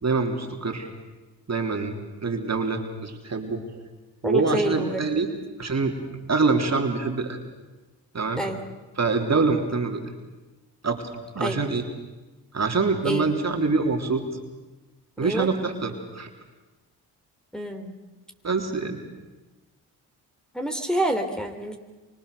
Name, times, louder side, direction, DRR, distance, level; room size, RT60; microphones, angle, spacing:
voice 1, 0.0-0.9 1.5-1.9 2.2-3.6 4.2-5.3 5.6-6.0 6.3-7.4 8.1-8.4 9.0-10.0 10.8-11.0 11.3-11.8 12.5-14.2 15.2-16.3 18.4-19.0, right 4 dB, 40° right, 3 dB, 3.6 m, -25 dB
voice 2, 4.2-5.1 8.4-8.6 11.4-11.6 13.0-13.3 15.2-15.5 17.5-17.9 20.5-21.8, right 1 dB, ahead, 3 dB, 3.3 m, -27 dB
25.5 x 25.0 x 6.8 m, 1.2 s
supercardioid pair, 55°, 40 cm